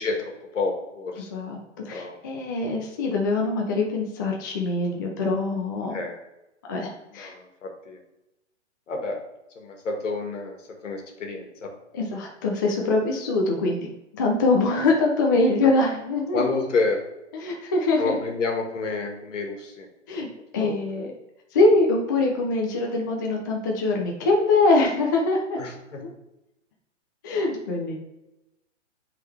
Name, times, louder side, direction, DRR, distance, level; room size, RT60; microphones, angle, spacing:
voice 1, 0.0-1.3 1.9-2.2 5.9-6.2 7.1-8.0 8.9-9.2 9.6-10.6 10.8-11.7 15.6-15.7 16.3-17.0 18.0-19.9 20.5-21.0 25.6-26.0, left 3 dB, 80° left, 3 dB, 1.7 m, -29 dB
voice 2, 1.8-6.0 6.7-7.3 11.9-13.9 14.1-16.5 17.3-18.2 20.1-20.3 20.5-21.1 21.5-25.6 27.2-28.0, left 3 dB, 20° left, 0 dB, 0.4 m, -23 dB
8.0 x 3.9 x 3.3 m, 0.95 s
hypercardioid pair, 155°, 36 cm